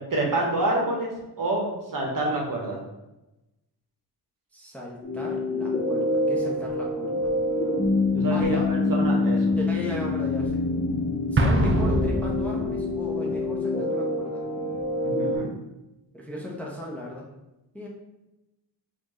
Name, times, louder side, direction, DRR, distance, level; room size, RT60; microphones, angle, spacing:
voice 1, 0.1-1.1 1.4-2.8 8.1-8.6 9.0-9.5 15.0-15.5, right 2 dB, 45° right, -1 dB, 1.1 m, -27 dB
voice 2, 4.5-7.3 8.3-8.7 9.5-10.6 11.3-14.4 16.1-17.3 17.7-17.9, left 1 dB, 5° left, -3 dB, 0.8 m, -36 dB
sound 1, 5.0-15.4, left 2 dB, 20° left, 1.3 m, -26 dB
Explosion, 11.4-13.0, right 1 dB, 30° right, 0.5 m, -24 dB
4.3 x 2.6 x 3.1 m, 0.96 s
cardioid pair, 65°, 45 cm